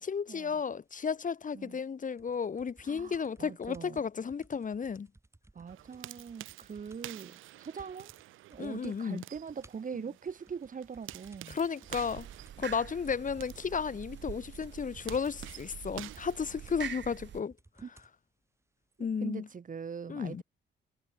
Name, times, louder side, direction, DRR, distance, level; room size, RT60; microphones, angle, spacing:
voice 1, 0.0-5.1 8.6-9.2 11.5-12.3 12.6-17.5 19.0-19.5 20.1-20.4, left 6 dB, 40° left, 3.2 m, -33 dB
sound 1, 2.2-7.2 7.5-7.6 7.8-8.2 8.5-9.0 9.3-18.2 19.0-19.1, right 2 dB, 15° right, 7.0 m, -60 dB
voice 2, 2.8-4.0 5.5-8.1 8.5-11.6 17.8-17.9 19.0-20.4, right 6 dB, 40° right, 3.0 m, -42 dB
sound 2, 5.7-17.1, right 16 dB, 90° right, 2.5 m, -50 dB
sound 3, 11.9-17.4, right 10 dB, 65° right, 5.7 m, -45 dB
cardioid pair, 90°, 20 cm